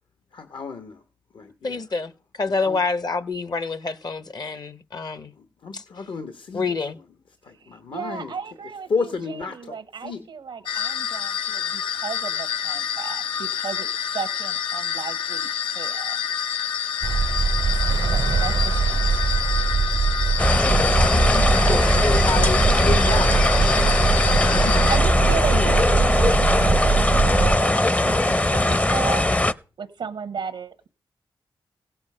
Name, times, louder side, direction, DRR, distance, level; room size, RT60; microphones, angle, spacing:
voice 1, 0.3-1.0 1.3-1.8 2.6-2.8 5.6-6.6 7.4-8.3 8.9-9.8 10.0-10.2 17.9-18.3 20.6-23.3 24.4-24.9 25.2-25.7, left 4 dB, 70° left, 1.0 m, -31 dB
voice 2, 1.6-5.3 5.7-5.8 6.5-7.0, left 4 dB, 50° left, 0.7 m, -27 dB
voice 3, 7.5-13.9 14.1-16.2 18.1-19.1 24.7-29.3 29.8-30.9, right 6 dB, 85° right, 0.8 m, -34 dB
sound 1, 10.7-25.0, left 8 dB, 90° left, 0.6 m, -28 dB
sound 2, 17.0-27.6, right 4 dB, 60° right, 0.5 m, -22 dB
sound 3, 20.4-29.5, left 2 dB, 15° left, 0.5 m, -20 dB
16.5 x 7.0 x 5.4 m
cardioid pair, 70°, 9 cm